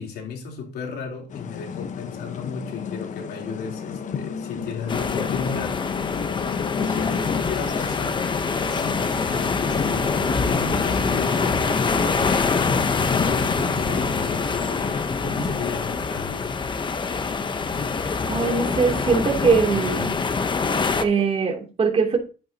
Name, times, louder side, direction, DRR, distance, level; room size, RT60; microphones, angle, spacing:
voice 1, 0.0-5.8 6.8-8.4 9.2-16.6, left 5 dB, 75° left, 3.5 m, -34 dB
sound 1, 1.3-15.1, left 7 dB, 50° left, 1.1 m, -33 dB
sound 2, 4.9-21.0, left 4 dB, 30° left, 0.9 m, -25 dB
sound 3, 8.5-14.4, right 3 dB, 15° right, 1.8 m, -38 dB
voice 2, 18.3-20.2 21.0-22.2, right 5 dB, 35° right, 3.0 m, -21 dB
11.0 x 9.1 x 2.9 m
cardioid pair, 110°, 17 cm